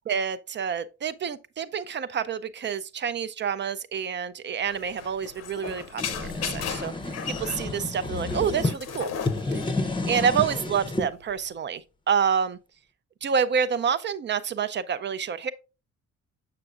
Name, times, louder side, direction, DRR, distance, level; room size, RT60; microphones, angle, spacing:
voice 1, 0.1-6.9 7.2-9.1 9.5-9.6 10.1-12.6 13.2-15.5, right 7 dB, 40° right, 0.4 m, -28 dB
sound 1, 4.6-11.5, left 7 dB, 55° left, 0.7 m, -37 dB
sound 2, 5.7-8.7 9.2-11.1, left 2 dB, 15° left, 0.6 m, -30 dB
6.7 x 6.0 x 2.4 m
cardioid pair, 90°, 30 cm